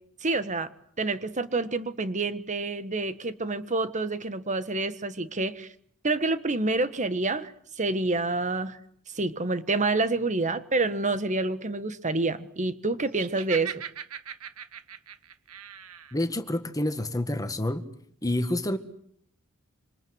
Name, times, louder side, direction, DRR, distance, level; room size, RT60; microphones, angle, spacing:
voice 1, 0.2-0.7 1.0-5.7 6.0-7.5 7.8-8.8 9.1-13.8, right 3 dB, 35° right, 12 dB, 1.5 m, -28 dB
Laughter, 13.1-16.1, right 8 dB, 85° right, 1.7 m, -39 dB
voice 2, 16.1-17.8 18.2-18.8, left 1 dB, 15° left, 10 dB, 1.8 m, -28 dB
27.0 x 27.0 x 8.0 m, 0.63 s
head